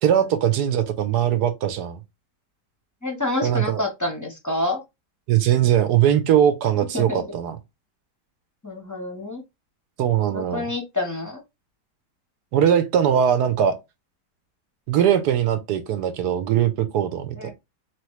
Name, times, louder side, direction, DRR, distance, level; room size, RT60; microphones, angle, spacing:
voice 1, 0.0-2.0 3.4-3.8 5.3-7.6 10.0-10.7 12.5-13.8 14.9-17.5, right 9 dB, 75° right, 1.2 m, -20 dB
voice 2, 3.0-4.8 6.9-7.2 8.6-9.4 10.3-11.4 17.3-17.5, left 2 dB, 15° left, 0.6 m, -28 dB
4.1 x 3.0 x 3.1 m
omnidirectional pair, 1.8 m